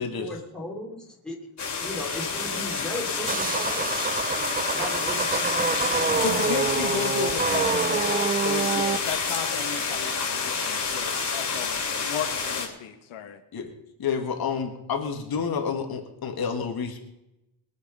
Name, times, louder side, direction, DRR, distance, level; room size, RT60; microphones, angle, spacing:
voice 1, 0.2-1.4 1.8-4.4 4.8-6.4, left 1 dB, ahead, -3 dB, 3.2 m, -37 dB
sound 1, 1.6-12.7, left 5 dB, 35° left, 3.3 m, -28 dB
sound 2, 3.3-9.0, right 5 dB, 20° right, 0.4 m, -27 dB
voice 2, 6.2-13.4, left 8 dB, 85° left, 4 dB, 1.6 m, -34 dB
voice 3, 14.0-17.0, left 6 dB, 50° left, 3 dB, 2.1 m, -29 dB
22.5 x 8.1 x 5.4 m, 0.88 s
cardioid pair, 170°, 47 cm